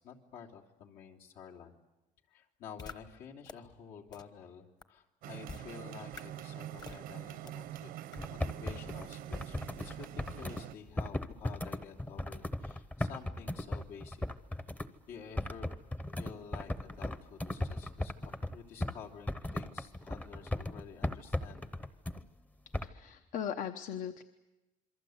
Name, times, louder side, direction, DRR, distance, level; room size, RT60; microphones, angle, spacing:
voice 1, 0.0-1.7 2.3-7.9 8.3-14.2 15.1-15.8 16.1-21.7, left 6 dB, 75° left, -1 dB, 3.3 m, -50 dB
sound 1, 2.8-2.9 3.5-3.6 4.1-4.2 4.8-4.9 5.5-5.6 6.1-6.2 6.8-7.0 7.5-7.6 8.1-8.2, left 5 dB, 25° left, 1.2 m, -45 dB
sound 2, 5.2-10.7, right 12 dB, 90° right, 1.1 m, -45 dB
sound 3, 8.2-10.6 11.0-14.9 15.4-19.0 19.3-22.2 22.7-22.9, left 1 dB, 10° left, 0.8 m, -37 dB
voice 2, 22.8-24.2, left 8 dB, 60° left, 8 dB, 1.0 m, -38 dB
27.5 x 23.5 x 8.0 m, 1.0 s
cardioid pair, 165°, 15 cm